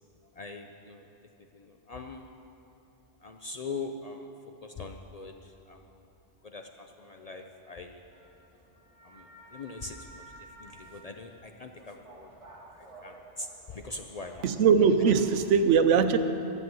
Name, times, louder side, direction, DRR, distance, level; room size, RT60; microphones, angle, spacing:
voice 1, 0.4-1.1 1.5-2.3 3.2-4.3 4.6-5.8 6.4-8.0 9.0-10.2 10.6-12.3 13.0-14.5, left 3 dB, 50° left, 4 dB, 0.5 m, -42 dB
sound 1, 8.1-15.2, right 2 dB, 30° right, 2.0 m, -52 dB
voice 2, 14.4-16.2, right 6 dB, 85° right, 9 dB, 1.0 m, -21 dB
12.0 x 7.7 x 7.7 m, 2.9 s
omnidirectional pair, 1.2 m